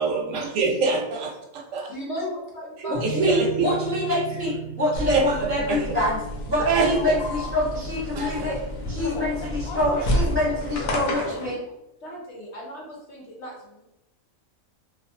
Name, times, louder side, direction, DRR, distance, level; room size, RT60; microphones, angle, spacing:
voice 1, 0.0-1.2 1.7-1.9 2.8-2.9 3.2-3.7 5.1-5.4 5.7-5.8 6.7-7.2 8.1-8.4, right 4 dB, 70° right, 0 dB, 0.9 m, -23 dB
voice 2, 1.9-3.2 12.0-13.8, equal, 60° left, -2 dB, 0.9 m, -36 dB
voice 3, 2.9-6.2 6.5-8.6 8.9-11.6, left 1 dB, 15° left, -6 dB, 0.4 m, -26 dB
sound 1, 2.9-8.5, right 8 dB, 40° right, 0.6 m, -37 dB
sound 2, 4.9-11.5, left 1 dB, 85° left, 1.1 m, -30 dB
2.5 x 2.4 x 2.6 m, 0.90 s
omnidirectional pair, 1.5 m